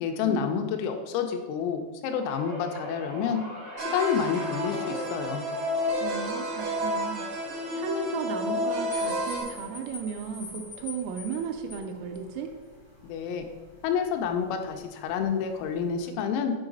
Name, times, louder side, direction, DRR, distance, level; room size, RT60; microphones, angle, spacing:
voice 1, 0.0-3.4 3.8-5.4 13.0-13.5 13.8-16.5, left 7 dB, 85° left, 5 dB, 3.4 m, -29 dB
sound 1, 2.2-12.6 13.0-13.4 14.5-14.6, right 1 dB, 45° right, 0.9 m, -42 dB
sound 2, 3.8-9.4, left 1 dB, 70° right, 1.8 m, -30 dB
voice 2, 6.0-7.2 7.7-12.5, right 6 dB, 85° right, 4 dB, 3.1 m, -35 dB
sound 3, 8.9-16.1, left 5 dB, 60° left, 1.4 m, -47 dB
8.3 x 4.8 x 3.9 m, 1.3 s
omnidirectional pair, 6.0 m